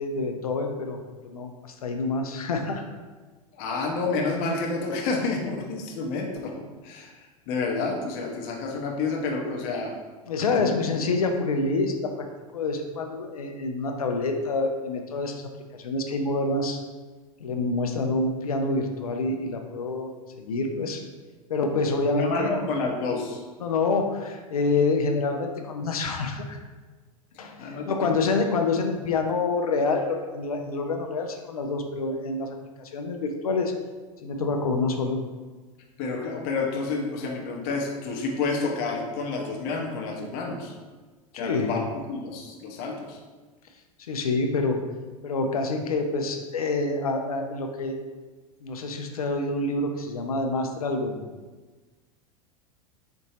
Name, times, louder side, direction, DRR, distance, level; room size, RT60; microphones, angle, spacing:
voice 1, 0.0-2.8 10.3-12.3 12.5-15.4 15.7-16.8 17.4-20.1 20.4-21.0 21.5-22.5 23.6-26.6 27.4-33.7 34.2-35.2 41.3-41.8 44.1-44.8 45.2-48.0 48.6-51.2, left 3 dB, 80° left, 4 dB, 0.5 m, -27 dB
voice 2, 3.5-6.5 6.8-9.9 10.5-11.0 22.2-23.4 27.4-28.1 36.0-40.7 41.3-43.2, left 3 dB, 50° left, 1 dB, 0.8 m, -29 dB
4.3 x 2.6 x 2.9 m, 1.3 s
hypercardioid pair, 85°, 18 cm